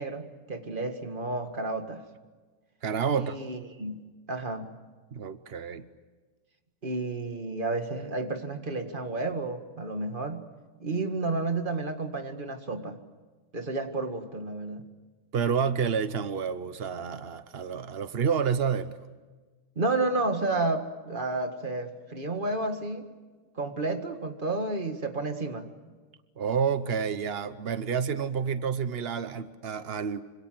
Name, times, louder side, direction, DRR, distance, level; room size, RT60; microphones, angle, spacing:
voice 1, 0.0-2.0 3.1-4.7 6.8-10.4 10.8-13.0 13.5-14.8 19.8-23.1 23.6-25.7, right 2 dB, 25° right, 6 dB, 1.9 m, -31 dB
voice 2, 2.8-3.4 5.1-5.9 15.3-19.0 26.4-30.2, right 6 dB, 80° right, 11 dB, 0.5 m, -29 dB
26.0 x 26.0 x 7.8 m, 1.3 s
omnidirectional pair, 2.4 m